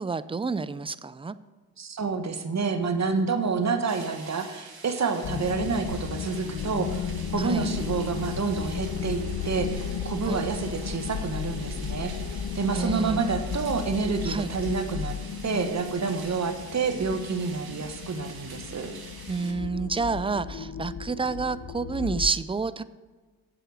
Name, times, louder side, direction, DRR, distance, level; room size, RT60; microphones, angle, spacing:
voice 1, 0.0-1.3 7.4-7.7 10.3-10.5 12.7-13.3 14.3-14.5 19.3-22.8, right 4 dB, 15° right, 15 dB, 0.4 m, -29 dB
voice 2, 1.8-7.1 7.3-15.2 15.4-18.9, right 4 dB, 45° right, 7 dB, 1.2 m, -28 dB
sound 1, 3.9-19.5, right 4 dB, 70° right, 2.0 m, -46 dB
sound 2, 5.2-22.3, left 7 dB, 70° left, 0.8 m, -34 dB
7.9 x 7.7 x 6.4 m, 1.4 s
cardioid pair, 65°, 37 cm